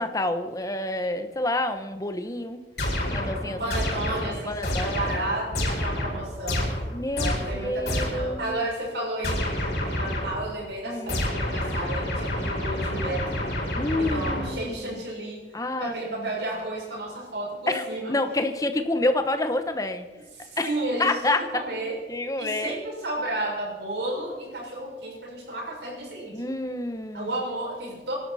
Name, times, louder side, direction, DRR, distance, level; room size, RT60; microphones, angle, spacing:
voice 1, 0.0-2.6 3.1-3.6 4.4-5.0 6.9-8.6 10.9-11.2 13.7-15.0 15.5-16.3 17.7-20.1 20.6-20.7 21.0-21.6 22.1-22.7 26.3-27.3, left 2 dB, 20° left, 8 dB, 1.0 m, -28 dB
sound 1, 2.8-8.4 9.2-10.5 11.1-14.8, left 1 dB, 65° left, 5.1 m, -29 dB
voice 2, 3.4-6.7 7.2-13.5 14.0-15.4 15.8-18.1 20.3-22.0 22.4-26.4 27.1-28.2, right 1 dB, 75° right, -2 dB, 6.2 m, -32 dB
25.0 x 12.0 x 4.2 m, 1.3 s
head